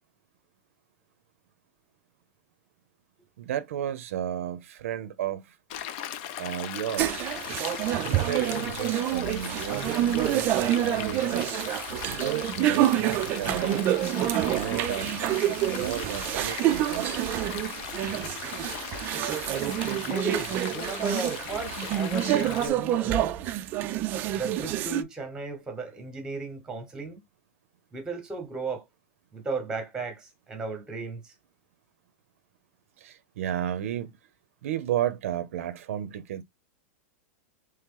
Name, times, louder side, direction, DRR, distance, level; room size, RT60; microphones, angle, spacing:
voice 1, 3.4-5.6 6.4-7.3 7.9-11.5 12.1-13.9 14.4-17.1 33.0-34.2 34.6-36.4, right 11 dB, 75° right, 0.6 m, -33 dB
Stream, 5.7-22.7, left 10 dB, 40° left, 0.5 m, -38 dB
sound 1, 7.0-25.0, right 13 dB, 25° right, 0.3 m, -27 dB
voice 2, 20.0-23.4 24.3-27.2 27.9-28.8 29.3-31.3, right 3 dB, 10° right, 1.0 m, -35 dB
3.2 x 2.9 x 3.7 m
supercardioid pair, 170°, 8 cm